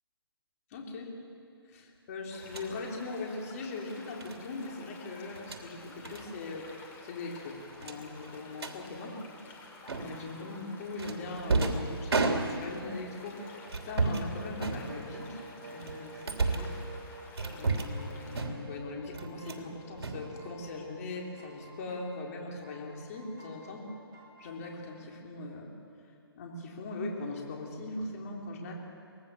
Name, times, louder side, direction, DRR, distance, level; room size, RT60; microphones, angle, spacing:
voice 1, 0.7-1.1 1.7-6.7 7.0-9.6 9.9-16.7 17.5-23.9 24.4-25.7 26.4-28.7, left 2 dB, 35° left, 0 dB, 3.8 m, -40 dB
sound 1, 2.3-18.5, left 3 dB, 15° left, 2.8 m, -51 dB
sound 2, 2.4-2.7 4.2-4.4 5.3-5.6 6.0-6.2 6.5-6.7 7.0-7.1 7.8-8.8 9.9-10.3 11.0-12.9 13.7-14.3 14.6-15.3 15.8-16.8 17.4-18.0 18.3-18.8 19.1-19.7 20.0-20.8, right 3 dB, 75° right, 3.1 m, -32 dB
sound 3, 12.8-24.7, right 2 dB, 20° right, 4.6 m, -50 dB
24.5 x 19.5 x 7.1 m, 2.7 s
hypercardioid pair, 155°, 13 cm